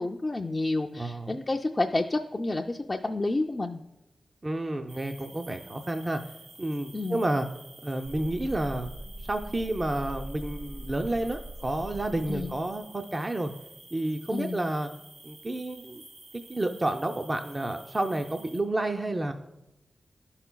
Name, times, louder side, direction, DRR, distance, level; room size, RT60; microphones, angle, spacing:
voice 1, 0.0-3.8 6.9-7.2 12.3-12.5 14.3-14.6, left 2 dB, 30° left, 1 dB, 0.3 m, -29 dB
voice 2, 0.9-1.4 4.4-6.2 6.6-7.5 7.8-8.9 9.2-13.5 13.9-14.9 15.2-16.0 16.5-19.3, right 1 dB, 30° right, 5 dB, 0.4 m, -30 dB
sound 1, 4.9-18.6, right 2 dB, 60° right, 1.6 m, -51 dB
sound 2, 8.0-13.0 13.4-13.5, right 1 dB, 80° right, 2.0 m, -42 dB
11.5 x 5.6 x 2.2 m, 0.92 s
cardioid pair, 55°, 0 cm